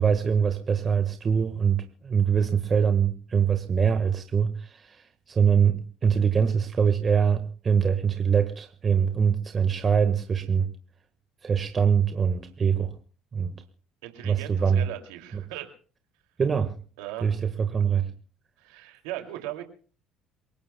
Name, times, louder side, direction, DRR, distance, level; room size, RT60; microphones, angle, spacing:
voice 1, 0.0-10.7 11.4-12.9 13.3-13.5 14.2-14.9 15.3-15.4 16.4-16.7 17.2-18.1, right 7 dB, 35° right, 6 dB, 1.4 m, -23 dB
voice 2, 14.0-15.7 17.0-17.3 17.7-17.8 18.6-19.6, right 14 dB, 85° right, 5 dB, 2.5 m, -38 dB
28.0 x 17.5 x 2.2 m, 0.40 s
supercardioid pair, 85°, 0 cm